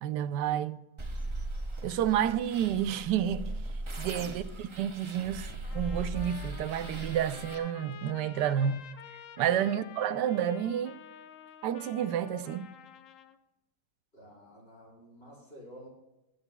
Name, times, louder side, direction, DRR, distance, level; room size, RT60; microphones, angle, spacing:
voice 1, 0.0-0.8 1.8-3.5 4.0-5.5 5.7-8.8 9.4-11.0 11.6-12.7, right 9 dB, 75° right, 1.2 m, -30 dB
sound 1, 1.0-7.6, right 2 dB, 35° right, 0.5 m, -38 dB
voice 2, 3.9-4.3 9.4-9.6 14.1-15.9, equal, 30° left, 4.4 m, -51 dB
Trumpet, 5.6-13.4, left 8 dB, 60° left, 0.8 m, -50 dB
22.0 x 8.0 x 2.2 m
omnidirectional pair, 1.9 m